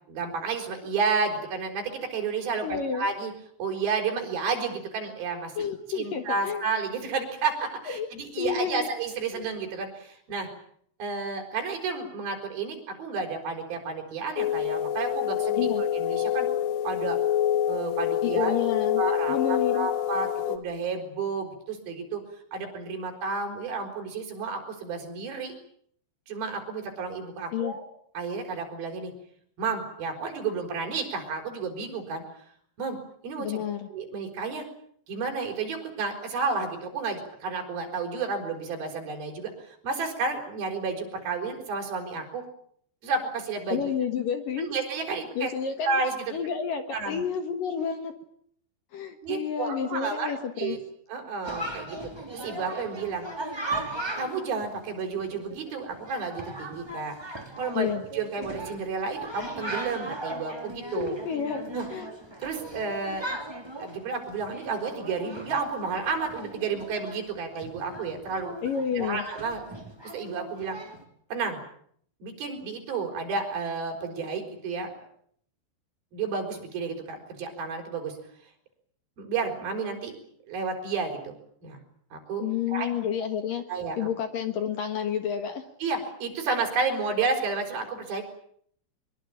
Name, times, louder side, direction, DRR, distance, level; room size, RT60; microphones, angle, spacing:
voice 1, 0.1-3.3 3.6-5.7 5.9-10.5 11.0-16.5 16.8-17.2 17.7-18.5 19.0-22.2 22.5-25.5 26.3-27.8 28.1-29.1 29.6-32.2 32.8-33.0 33.2-33.6 33.9-34.7 35.1-42.4 43.0-43.9 44.6-45.5 45.8-46.4 46.9-47.2 49.2-50.8 51.1-52.0 52.3-53.3 54.1-57.1 57.6-57.9 58.1-61.2 61.7-61.8 62.4-63.3 63.8-68.5 69.0-69.6 70.1-70.8 71.3-71.6 72.2-75.1 76.1-78.2 79.2-80.2 80.5-81.8 82.1-82.9 83.7-84.1 85.8-88.2, right 4 dB, 50° right, 2 dB, 6.7 m, -31 dB
voice 2, 2.6-3.1 5.6-6.7 7.9-8.1 8.4-8.9 9.3-9.5 15.6-15.8 18.2-19.0 19.3-19.9 27.5-27.7 33.4-33.9 43.7-44.7 45.3-46.0 46.3-48.1 48.9-50.8 57.7-58.0 61.0-61.6 61.9-62.1 68.6-69.2 82.4-83.6 84.0-85.6, left 7 dB, 60° left, 7 dB, 2.5 m, -30 dB
sound 1, 14.4-20.6, left 10 dB, 80° left, 4.1 m, -27 dB
Chatter, 51.4-71.0, right 1 dB, 5° right, 2.9 m, -38 dB
23.5 x 23.0 x 8.8 m, 0.65 s
omnidirectional pair, 5.8 m